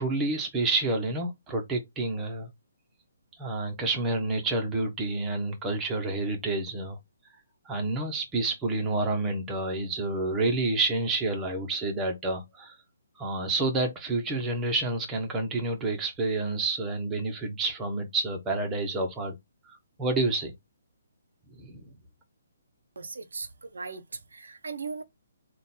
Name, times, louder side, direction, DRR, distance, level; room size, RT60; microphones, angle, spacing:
voice 1, 0.0-2.5 3.4-7.0 7.6-12.7 13.2-19.4 20.0-20.5 21.6-21.8, right 2 dB, 15° right, 1.1 m, -29 dB
voice 2, 23.0-25.0, right 4 dB, 85° right, 0.8 m, -38 dB
3.7 x 2.6 x 4.3 m
hypercardioid pair, 155°, 0 cm